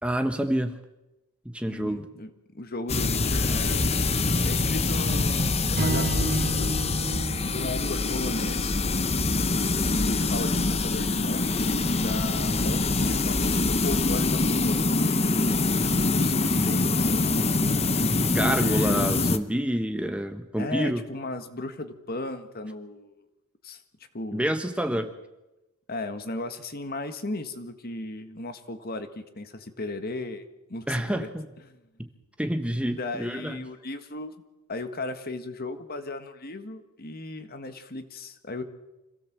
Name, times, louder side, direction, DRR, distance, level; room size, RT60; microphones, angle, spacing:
voice 1, 0.0-0.8 1.4-2.1 18.3-21.0 24.3-25.1 30.9-31.5 32.4-33.6, right 1 dB, 5° right, 6 dB, 1.0 m, -28 dB
voice 2, 1.6-4.0 4.4-6.7 7.4-8.8 9.8-14.8 15.8-17.3 18.5-19.1 20.6-23.2 23.6-23.8 24.1-24.4 24.9-25.1 25.9-30.4 30.7-31.3 31.7-31.8 32.9-34.3 34.7-38.6, left 2 dB, 45° left, 9 dB, 1.7 m, -36 dB
sound 1, 2.9-19.4, left 3 dB, 30° left, 1.0 m, -24 dB
Strum, 5.8-10.1, right 2 dB, 45° right, 0.7 m, -33 dB
26.0 x 17.0 x 7.5 m, 1.0 s
head